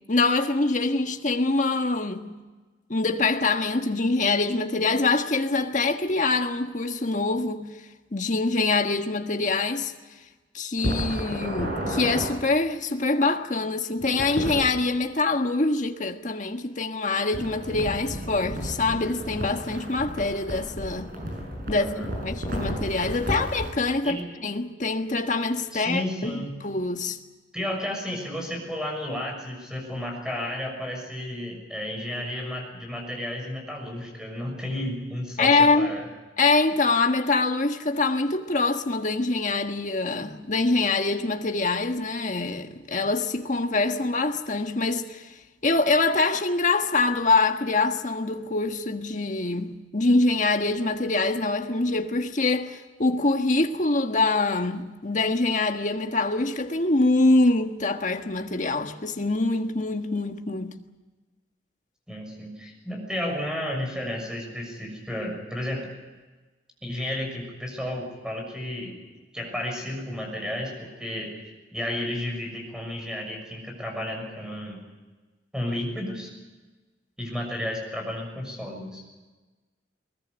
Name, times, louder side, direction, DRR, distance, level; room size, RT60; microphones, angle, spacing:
voice 1, 0.1-2.3 2.9-7.7 8.1-9.9 10.5-21.1 21.7-21.8 22.2-24.2 24.4-27.2 35.4-35.9 36.4-45.3 45.6-60.8, left 3 dB, 45° left, 1.5 m, -24 dB
sound 1, 10.8-12.3 14.0-14.6 17.3-23.7, equal, 50° right, 7.2 m, -32 dB
voice 2, 21.7-22.1 24.0-24.3 25.7-26.5 27.5-36.1 62.1-65.9 66.8-69.0 69.3-71.4 71.7-74.8 75.5-76.3 77.2-79.0, left 1 dB, 5° right, 6.7 m, -32 dB
21.5 x 20.0 x 8.2 m
head